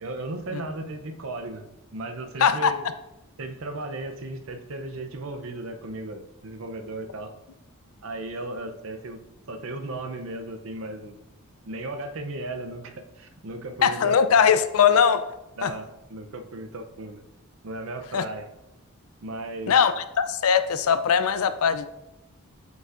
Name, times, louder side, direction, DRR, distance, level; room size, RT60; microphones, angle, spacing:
voice 1, 0.0-2.9 3.4-7.3 8.0-11.2 11.7-14.4 15.6-17.2 17.6-18.5 19.2-19.8, right 2 dB, 65° right, 7 dB, 0.6 m, -36 dB
voice 2, 2.4-2.8 13.8-15.2 15.6-15.7 18.1-18.3 19.7-21.9, left 7 dB, 75° left, 12 dB, 0.4 m, -20 dB
7.8 x 5.3 x 2.5 m, 0.93 s
head